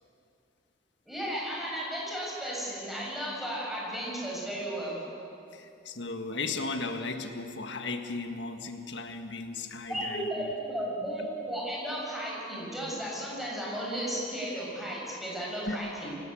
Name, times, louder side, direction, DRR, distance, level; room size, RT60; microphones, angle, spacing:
voice 1, 1.1-5.0 9.9-16.1, right 1 dB, ahead, -5 dB, 6.9 m, -34 dB
voice 2, 5.5-10.5 15.7-15.8, left 3 dB, 65° left, 6 dB, 1.7 m, -36 dB
25.0 x 17.0 x 8.6 m, 2.6 s
head